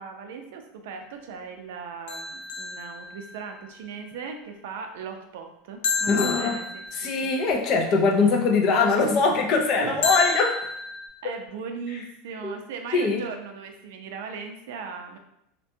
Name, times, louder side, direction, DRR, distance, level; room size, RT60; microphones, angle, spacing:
voice 1, 0.0-7.3 9.7-10.1 11.2-15.2, right 5 dB, 70° right, 4 dB, 0.4 m, -38 dB
sound 1, 2.1-3.6 5.8-7.5 10.0-11.1, left 3 dB, 90° left, 0.5 m, -30 dB
voice 2, 6.1-6.6 7.0-10.6 12.4-12.6 12.9-13.2, left 4 dB, 35° left, 3 dB, 0.3 m, -22 dB
2.5 x 2.2 x 2.6 m, 0.77 s
supercardioid pair, 175°, 0 cm